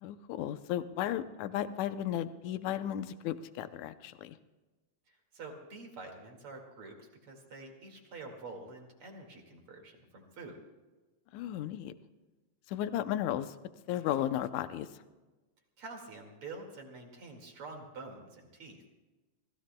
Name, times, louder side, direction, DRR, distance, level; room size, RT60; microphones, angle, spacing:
voice 1, 0.0-4.4 11.3-11.9 12.7-13.6 13.9-14.9, left 11 dB, 80° left, 12 dB, 2.0 m, -34 dB
voice 2, 5.1-10.6 15.8-18.8, right 3 dB, 50° right, 2 dB, 2.8 m, -47 dB
28.0 x 16.5 x 2.2 m, 1.2 s
omnidirectional pair, 3.4 m